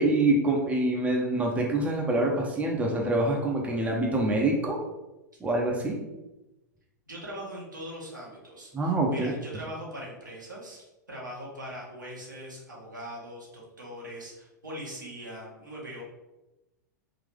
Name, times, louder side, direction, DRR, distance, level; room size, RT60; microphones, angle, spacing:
voice 1, 0.0-4.8 5.4-6.0 8.7-9.3, right 2 dB, 15° right, 0 dB, 0.7 m, -25 dB
voice 2, 7.1-16.0, equal, 80° right, -4 dB, 1.3 m, -41 dB
3.8 x 2.8 x 3.3 m, 1.0 s
figure-of-eight pair, 95°, 10 cm